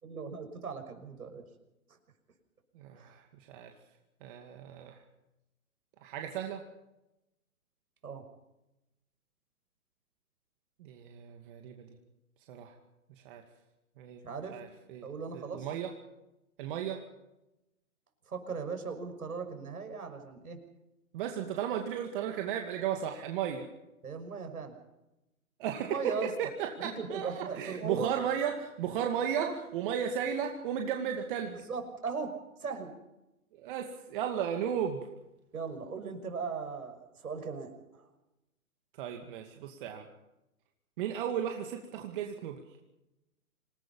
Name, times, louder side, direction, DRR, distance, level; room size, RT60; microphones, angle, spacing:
voice 1, 0.0-1.4 3.0-3.1 8.0-8.2 14.2-14.6 15.0-15.7 18.3-20.6 24.0-24.7 25.8-26.3 26.8-28.1 29.4-29.6 31.5-32.3 32.6-32.9 35.5-38.1, right 5 dB, 75° right, 7 dB, 6.2 m, -38 dB
voice 2, 2.7-3.7 4.2-5.0 6.0-6.6 10.8-11.9 12.5-12.7 13.2-13.4 14.0-14.2 14.5-15.1 15.3-15.9 16.6-17.0 21.1-23.7 25.6-31.6 33.5-35.1 39.0-40.0 41.0-42.6, right 8 dB, 35° right, 3 dB, 2.3 m, -35 dB
27.5 x 18.5 x 5.6 m, 0.92 s
hypercardioid pair, 140°, 44 cm